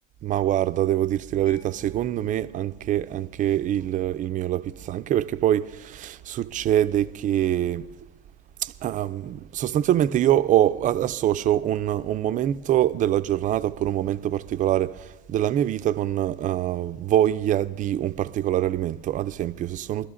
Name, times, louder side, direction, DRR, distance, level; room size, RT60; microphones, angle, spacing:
voice 1, 0.2-7.9 8.6-20.1, right 12 dB, 30° right, 0.3 m, -24 dB
Mallet percussion, 1.5-8.8, left 2 dB, 85° left, 3.8 m, -58 dB
23.0 x 13.0 x 2.5 m
supercardioid pair, 125°, 29 cm